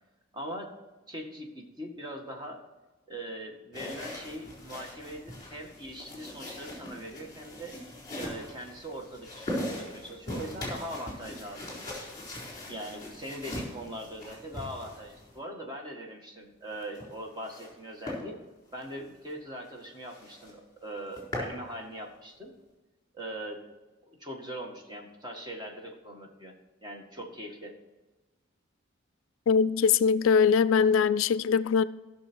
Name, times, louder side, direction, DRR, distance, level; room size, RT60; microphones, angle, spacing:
voice 1, 0.3-0.7 1.1-2.6 3.1-7.8 8.2-12.0 12.7-18.4 18.7-22.5 23.1-23.6 24.1-26.5 26.8-27.7, right 1 dB, 20° right, 1.8 m, -41 dB
sound 1, 3.7-15.4 16.7-17.7 18.0-18.2 18.7-18.9 19.3-19.4 19.7-19.8 20.1-20.5 20.9-21.6, left 1 dB, 20° left, 3.9 m, -40 dB
voice 2, 29.5-31.8, left 6 dB, 70° left, 0.4 m, -22 dB
15.5 x 6.5 x 4.6 m
head